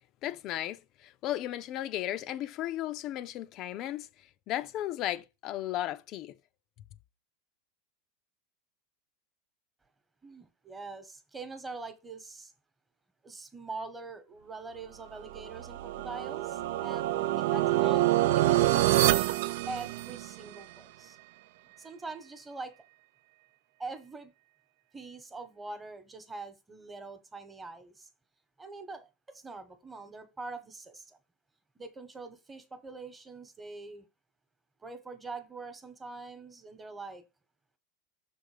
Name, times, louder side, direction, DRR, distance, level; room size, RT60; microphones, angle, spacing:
voice 1, 0.2-4.1 4.5-6.3, left 13 dB, 45° left, 0.4 m, -35 dB
voice 2, 10.2-12.5 13.2-17.1 17.4-18.1 18.3-19.3 19.7-21.2 21.8-22.8 23.8-24.3 24.9-28.1 28.6-31.2 31.7-34.1 34.8-37.2, right 3 dB, 15° right, 1.1 m, -43 dB
sound 1, 15.3-20.5, right 15 dB, 75° right, 0.4 m, -26 dB
6.4 x 3.9 x 4.9 m
supercardioid pair, 125°, 0 cm